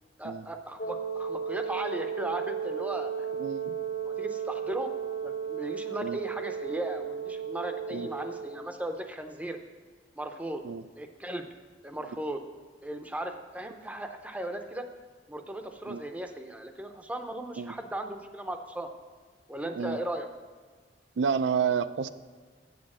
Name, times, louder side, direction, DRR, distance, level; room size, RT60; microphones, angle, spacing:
voice 1, 0.2-3.1 4.0-4.9 5.2-9.6 10.2-10.6 11.0-11.5 11.8-12.4 12.8-14.9 15.3-18.9 19.5-20.3, right 1 dB, 10° right, 6 dB, 0.5 m, -37 dB
Wind instrument woodwind instrument, 0.8-8.7, right 7 dB, 60° left, 0.7 m, -34 dB
voice 2, 3.4-3.8 6.0-6.2 7.9-8.1 10.6-10.8 15.9-16.0 17.6-17.7 19.8-20.0 21.2-22.1, right 6 dB, 80° right, 13 dB, 0.4 m, -29 dB
8.0 x 6.4 x 6.0 m, 1.5 s
head